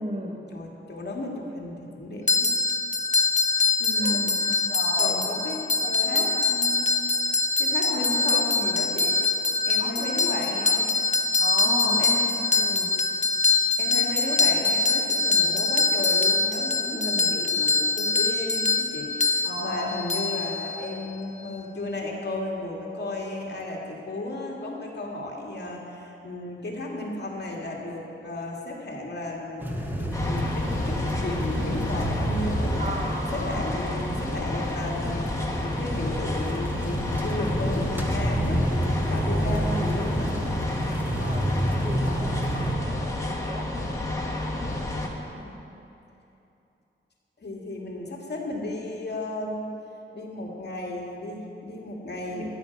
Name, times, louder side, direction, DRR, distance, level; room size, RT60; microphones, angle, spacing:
voice 1, 0.0-0.4 4.0-4.2 4.7-5.2 5.8-6.3 6.6-6.7 7.8-8.4 9.7-10.8 11.4-12.0 12.5-12.9 16.9-17.4 19.4-20.0 32.8-33.7 39.2-39.7 40.2-44.2 52.3-52.5, right 1 dB, 35° right, -1 dB, 1.7 m, -36 dB
voice 2, 0.5-2.5 3.8-4.3 5.0-5.6 6.0-6.9 7.6-9.2 9.7-10.9 11.6-12.3 13.8-33.0 33.3-38.6 39.1-40.3 45.3-45.6 47.4-49.7 50.1-52.5, left 1 dB, 55° left, -2 dB, 2.1 m, -34 dB
sound 1, 2.3-21.1, left 3 dB, 35° left, 0.7 m, -24 dB
sound 2, 29.6-42.8, equal, 10° right, 1.2 m, -29 dB
sound 3, 30.1-45.1, left 1 dB, 15° left, 1.6 m, -31 dB
13.0 x 10.5 x 6.0 m, 2.8 s
wide cardioid pair, 125°, 21 cm